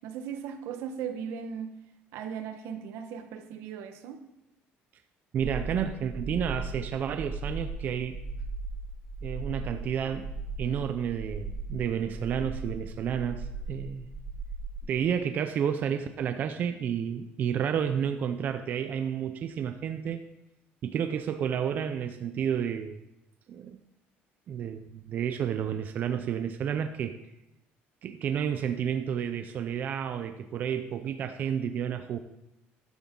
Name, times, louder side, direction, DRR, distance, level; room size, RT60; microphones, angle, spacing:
voice 1, 0.0-1.7 2.1-4.2, right 7 dB, 85° right, 7 dB, 1.3 m, -37 dB
voice 2, 5.3-8.2 9.2-10.3 10.6-14.1 14.9-20.2 20.8-23.0 23.5-23.8 24.5-27.2 28.0-32.2, right 8 dB, 40° right, 8 dB, 0.6 m, -31 dB
sound 1, 5.4-14.8, right 3 dB, 10° right, 3.7 m, -37 dB
13.0 x 11.0 x 3.9 m, 0.88 s
cardioid pair, 165°, 4 cm